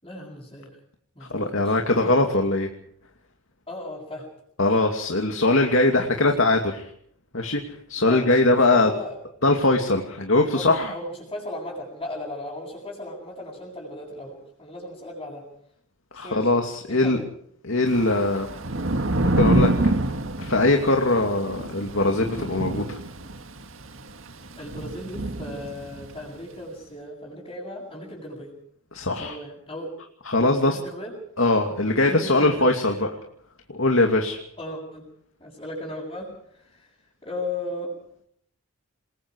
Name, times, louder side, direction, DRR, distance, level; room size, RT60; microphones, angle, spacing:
voice 1, 0.0-0.8 1.1-2.1 3.7-4.3 4.7-4.8 6.2-6.5 8.1-9.2 10.5-15.4 16.1-16.5 16.9-17.2 24.6-28.5 29.1-29.9 30.6-31.1 32.1-32.9 34.6-35.1 35.4-36.9 37.2-37.9, left 1 dB, 20° left, -5 dB, 7.9 m, -36 dB
voice 2, 1.3-2.7 4.6-6.8 7.3-8.9 9.4-10.9 16.1-17.2 17.6-18.5 19.3-19.7 20.4-23.0 28.9-29.4 30.3-30.8 31.4-33.1 33.7-34.4, left 2 dB, 65° left, 3 dB, 2.6 m, -21 dB
Thunder / Rain, 17.9-26.2, right 1 dB, 65° right, 1.8 m, -27 dB
27.5 x 21.5 x 4.8 m, 0.67 s
head